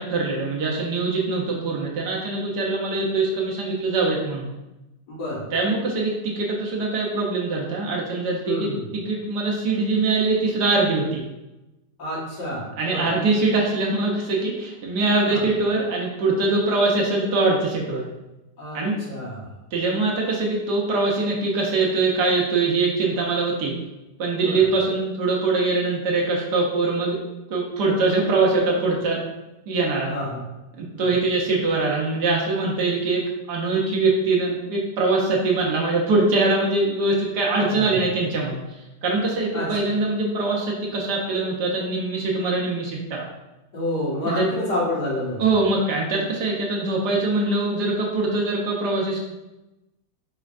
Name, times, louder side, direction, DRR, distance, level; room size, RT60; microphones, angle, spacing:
voice 1, 0.0-4.5 5.5-11.2 12.8-18.0 18.7-19.0 19.7-23.7 24.2-27.2 27.5-29.2 29.7-30.1 30.8-33.2 33.5-38.6 39.0-43.3 44.2-44.4 45.4-49.2, right 3 dB, 65° right, -2 dB, 1.3 m, -23 dB
voice 2, 5.1-5.5 8.5-8.8 12.0-13.1 15.3-15.4 18.6-19.5 24.3-24.6 30.1-30.4 31.0-31.1 37.7-37.9 39.5-39.9 43.7-45.4, left 1 dB, 65° left, -6 dB, 2.0 m, -29 dB
4.9 x 4.3 x 2.4 m, 0.99 s
omnidirectional pair, 2.0 m